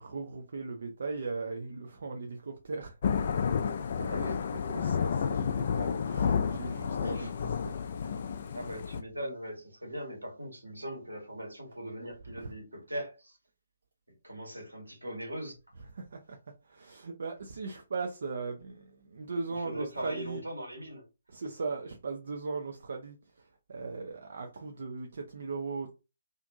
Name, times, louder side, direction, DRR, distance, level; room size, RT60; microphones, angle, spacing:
voice 1, 0.0-3.0 4.0-4.3 4.7-7.3 7.6-8.3 12.4-12.5 15.9-16.4 16.6-20.4 21.3-25.9, right 4 dB, 55° right, 0.4 m, -38 dB
Thunder / Rain, 3.0-9.0, left 6 dB, 45° left, 0.3 m, -31 dB
voice 2, 4.0-4.4 7.0-7.4 8.5-13.4 14.2-15.6 19.5-21.0, equal, 80° right, 1.2 m, -40 dB
2.5 x 2.5 x 2.5 m
figure-of-eight pair, 135°, 0 cm